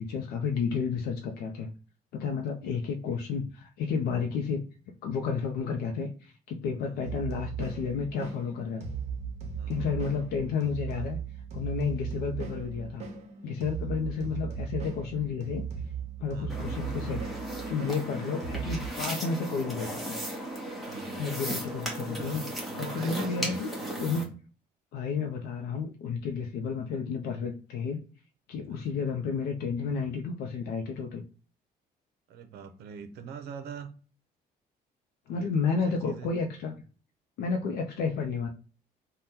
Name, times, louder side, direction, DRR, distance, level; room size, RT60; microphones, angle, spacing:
voice 1, 0.0-1.7 2.1-4.6 5.0-8.9 9.7-11.2 11.5-13.0 13.4-15.6 16.2-17.4 17.7-20.2 21.2-23.7 24.0-24.2 24.9-28.0 28.5-31.2 35.3-36.7 37.4-38.5, left 5 dB, 85° left, 3 dB, 0.5 m, -31 dB
sound 1, 7.0-18.9, right 6 dB, 45° right, 0.7 m, -37 dB
voice 2, 9.6-9.9 16.3-16.5 20.9-21.3 22.7-24.3 28.7-28.8 32.3-33.9 35.3-36.3, right 5 dB, 80° right, 9 dB, 0.5 m, -43 dB
sound 2, 16.5-24.2, equal, ahead, 0.8 m, -36 dB
2.8 x 2.2 x 3.4 m, 0.37 s
cardioid pair, 135°, 16 cm